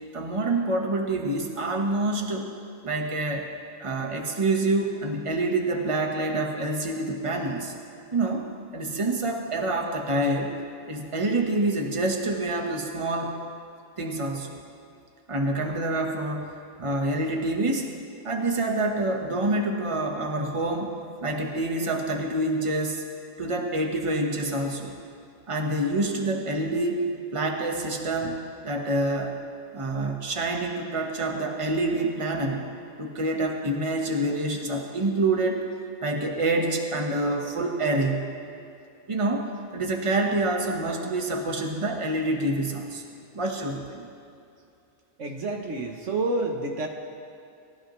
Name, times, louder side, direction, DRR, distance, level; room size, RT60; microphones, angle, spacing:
voice 1, 0.1-2.5 2.8-3.5 3.8-7.7 8.1-8.5 8.7-10.5 10.9-13.4 14.0-14.6 15.3-16.5 16.8-17.9 18.2-20.9 21.2-23.0 23.4-25.0 25.5-29.4 29.7-32.7 33.0-35.6 36.0-38.3 39.1-43.0 43.3-44.1, right 2 dB, 25° right, 2 dB, 1.4 m, -27 dB
voice 2, 45.2-46.9, right 2 dB, 65° right, 2 dB, 1.5 m, -28 dB
29.5 x 15.0 x 3.2 m, 2.6 s
omnidirectional pair, 1.3 m